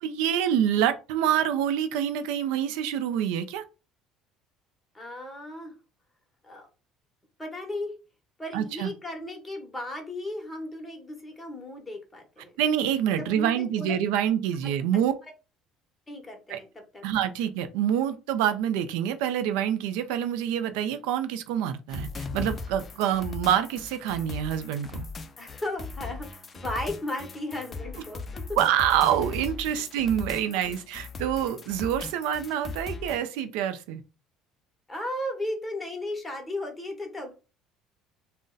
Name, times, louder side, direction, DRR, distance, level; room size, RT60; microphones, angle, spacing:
voice 1, 0.0-3.6 8.5-8.9 12.6-15.1 16.5-16.6 17.0-25.1 28.6-34.0, right 10 dB, 85° right, 0.4 m, -26 dB
voice 2, 4.9-5.7 6.4-6.7 7.4-7.9 8.4-12.5 13.1-13.9 14.6-14.7 16.1-16.7 16.9-17.0 25.4-28.4 34.9-37.3, left 1 dB, 10° left, 1.0 m, -35 dB
sound 1, 21.9-33.2, left 3 dB, 30° left, 0.4 m, -38 dB
2.5 x 2.1 x 3.7 m
cardioid pair, 120°, 0 cm